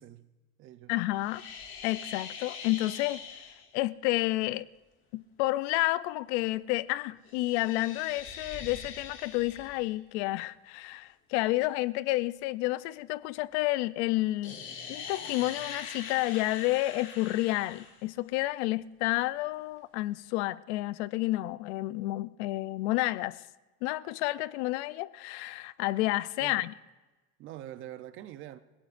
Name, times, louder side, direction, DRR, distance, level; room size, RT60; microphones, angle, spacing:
voice 1, 0.0-0.9 26.4-26.7 27.4-28.6, right 12 dB, 40° right, 0.7 m, -45 dB
voice 2, 0.9-1.4 1.8-3.2 3.7-4.7 5.1-14.6 14.9-23.4 23.8-26.7, left 18 dB, 85° left, 0.6 m, -30 dB
sound 1, 1.1-3.7 7.2-10.0 14.4-18.0, left 6 dB, 40° left, 2.2 m, -43 dB
30.0 x 16.5 x 2.6 m
cardioid pair, 170°, 33 cm